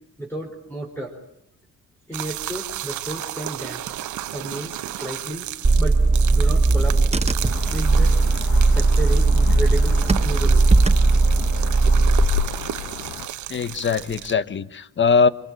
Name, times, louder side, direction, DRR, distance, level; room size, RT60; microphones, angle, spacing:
voice 1, 0.2-1.2 2.1-4.0 4.3-5.5 5.8-6.0 6.3-7.1 7.7-10.7, right 1 dB, 5° left, 4.7 m, -32 dB
sound 1, 2.1-14.3, right 13 dB, 75° right, 1.0 m, -33 dB
Car / Engine, 5.6-12.3, right 3 dB, 20° right, 0.9 m, -17 dB
sound 2, 7.4-13.3, left 10 dB, 90° left, 1.1 m, -32 dB
voice 2, 13.5-15.3, left 5 dB, 40° left, 1.1 m, -21 dB
25.5 x 22.5 x 9.0 m
cardioid pair, 90°, 30 cm